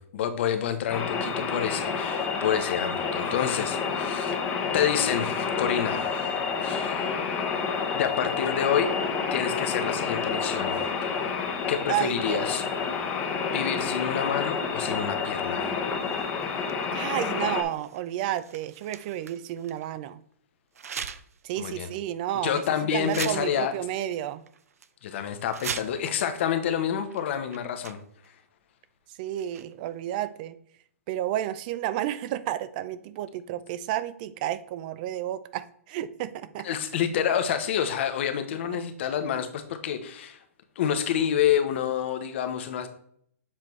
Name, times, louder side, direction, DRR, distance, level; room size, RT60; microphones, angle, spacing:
voice 1, 0.1-4.4 4.7-7.2 7.9-8.9 9.3-11.3 11.7-12.6 13.5-15.7 21.6-21.9 22.4-23.7 25.0-28.0 36.6-40.4 40.8-42.9, left 9 dB, 50° left, 8 dB, 1.0 m, -28 dB
sound 1, 0.9-17.6, left 5 dB, 20° left, 0.9 m, -29 dB
voice 2, 11.9-12.5 16.9-20.2 21.4-22.6 22.9-24.4 29.2-30.6 31.1-36.7, right 12 dB, 35° right, 15 dB, 0.4 m, -31 dB
sound 2, 16.0-19.9 20.7-21.4 21.8-22.0 22.6-22.7 23.0-24.1 24.5-24.9 25.4-26.2 27.1-27.2 27.5-28.3 29.3-29.9, right 7 dB, 85° right, 0.5 m, -40 dB
7.4 x 4.4 x 3.2 m, 0.66 s
hypercardioid pair, 150°, 8 cm